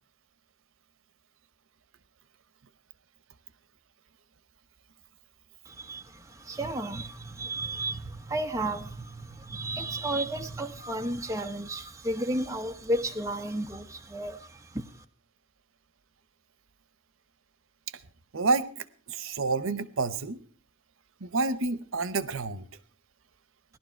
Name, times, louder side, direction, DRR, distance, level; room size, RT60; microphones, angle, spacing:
voice 1, 5.7-14.8, right 1 dB, 15° right, 4 dB, 0.9 m, -33 dB
voice 2, 18.3-20.4 21.2-22.7, right 3 dB, 85° right, 16 dB, 0.9 m, -29 dB
18.0 x 12.0 x 4.5 m, 0.41 s
head